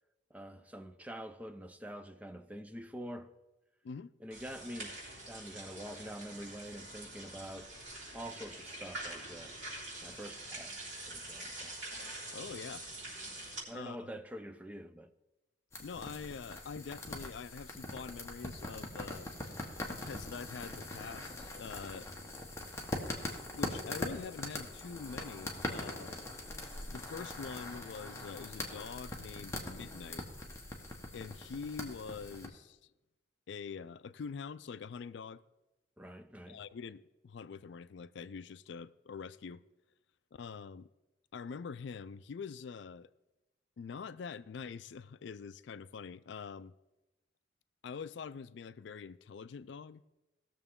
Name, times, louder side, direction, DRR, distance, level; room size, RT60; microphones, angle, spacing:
voice 1, 0.3-3.3 4.2-5.0 5.3-7.7 8.1-9.6 10.0-10.8 11.1-11.8 13.7-15.1 36.0-36.6, equal, 5° right, 0.4 m, -46 dB
sound 1, 4.3-13.6, right 1 dB, 75° right, 3.6 m, -45 dB
voice 2, 12.3-12.9 13.7-14.1 15.8-19.3 19.9-22.1 23.5-26.2 26.9-30.2 31.1-32.8 33.5-35.4 36.5-39.6 40.3-40.9 41.3-43.1 43.8-46.7 47.8-50.0, left 5 dB, 65° left, 0.4 m, -45 dB
sound 2, 15.7-32.5, left 1 dB, 15° left, 1.2 m, -42 dB
18.5 x 6.8 x 3.7 m
head